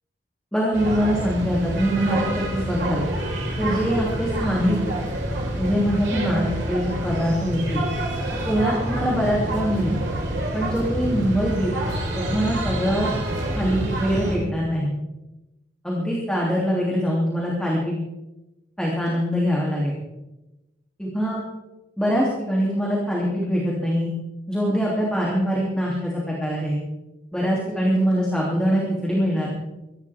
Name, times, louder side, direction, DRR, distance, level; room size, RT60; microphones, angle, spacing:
voice 1, 0.5-3.0 3.6-4.8 5.6-7.8 8.5-10.0 10.5-11.7 12.3-13.1 13.5-14.9 15.8-18.0 18.8-20.0 21.0-21.4 22.0-24.1 24.5-26.8 27.3-29.5, equal, 5° left, -5 dB, 3.1 m, -23 dB
sound 1, 0.7-14.4, right 1 dB, 75° right, 4.9 m, -27 dB
24.5 x 12.5 x 3.7 m, 0.99 s
head